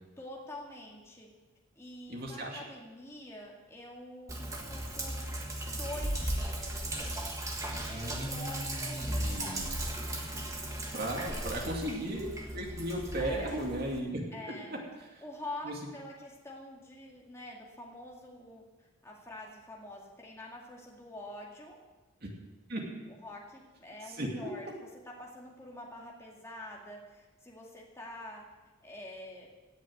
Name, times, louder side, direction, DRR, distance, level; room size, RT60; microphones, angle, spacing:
voice 1, 0.2-1.3 1.8-7.1 7.8-9.9 11.3-11.5 11.7-11.8 13.2-13.6 14.3-14.8 15.2-21.8 23.1-24.7 25.1-28.4 28.8-29.5, left 1 dB, 15° left, -2 dB, 2.1 m, -46 dB
voice 2, 2.1-2.6 7.9-9.7 10.9-14.8 15.6-15.7 22.2-22.3 22.7-22.8 24.1-24.5, right 1 dB, 45° right, -1 dB, 2.5 m, -36 dB
Sink (filling or washing), 4.3-14.0, right 1 dB, 15° right, 1.5 m, -36 dB
17.0 x 7.3 x 7.9 m, 1.2 s
head